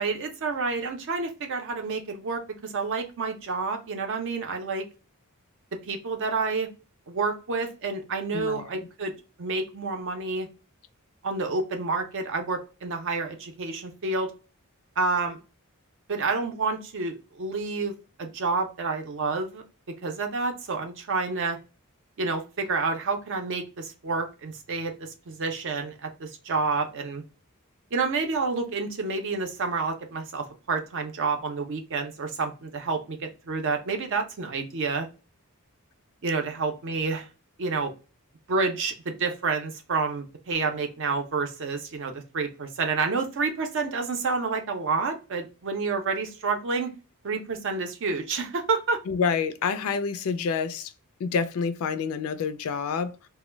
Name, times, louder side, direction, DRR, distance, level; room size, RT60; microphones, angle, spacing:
voice 1, 0.0-4.8 5.9-6.7 7.1-9.1 9.4-10.5 11.2-14.3 15.0-15.4 16.1-17.9 18.2-19.6 20.0-21.6 22.2-27.2 27.9-35.1 36.2-37.3 37.6-37.9 38.5-46.9 47.2-49.0, right 4 dB, 60° right, 0.5 m, -29 dB
voice 2, 8.3-8.7 49.1-50.9 51.2-53.1, left 5 dB, 70° left, 0.3 m, -28 dB
2.2 x 2.0 x 3.1 m
head